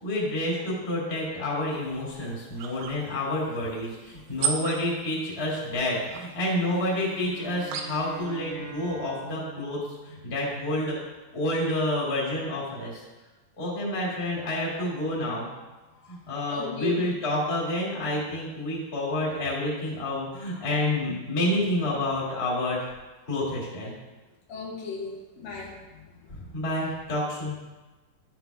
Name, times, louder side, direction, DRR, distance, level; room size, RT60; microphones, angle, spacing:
voice 1, 0.0-11.0 11.3-13.0 13.6-15.5 16.1-22.8 23.3-23.9 26.3-27.6, left 1 dB, 20° left, -5 dB, 2.0 m, -29 dB
sound 1, 1.7-8.2, right 7 dB, 90° right, 2.6 m, -37 dB
sound 2, 6.6-11.0, right 7 dB, 70° right, 2.2 m, -44 dB
voice 2, 16.5-17.0 24.5-25.8, left 5 dB, 75° left, -3 dB, 3.1 m, -35 dB
12.0 x 7.6 x 2.3 m, 1.2 s
omnidirectional pair, 4.1 m